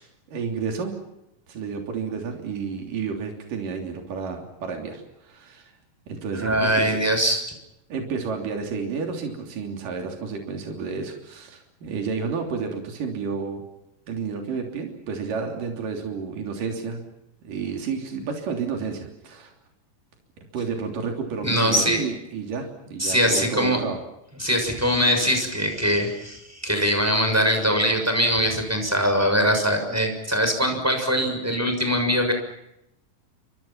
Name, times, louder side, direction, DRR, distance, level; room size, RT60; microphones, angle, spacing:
voice 1, 0.3-0.9 1.5-5.7 6.1-7.0 7.9-13.6 14.1-17.0 17.4-19.5 20.5-24.0, right 5 dB, 75° right, 3 dB, 4.9 m, -31 dB
voice 2, 6.3-7.4 21.4-22.0 23.0-23.8 24.4-32.3, equal, 5° right, 5 dB, 6.4 m, -22 dB
29.5 x 26.0 x 5.8 m, 0.85 s
omnidirectional pair, 3.9 m